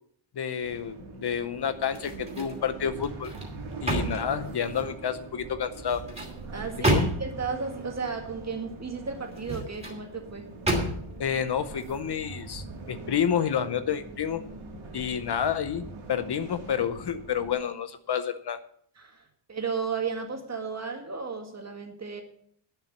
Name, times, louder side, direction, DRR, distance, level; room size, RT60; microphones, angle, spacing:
voice 1, 0.4-3.3 3.8-6.0 6.9-7.1 11.2-14.4 14.9-18.6, left 8 dB, 55° left, 11 dB, 0.8 m, -29 dB
sound 1, 0.6-17.5, right 3 dB, 70° right, 2.9 m, -43 dB
sound 2, 1.9-2.6 3.0-5.0 5.7-7.5 9.2-10.0 10.7-11.3 11.7-12.0, right 1 dB, 15° right, 2.6 m, -30 dB
voice 2, 6.5-10.5 19.0-19.2 19.5-22.2, right 5 dB, 30° right, 4 dB, 1.9 m, -34 dB
9.6 x 7.3 x 7.8 m, 0.64 s
wide cardioid pair, 155°, 49 cm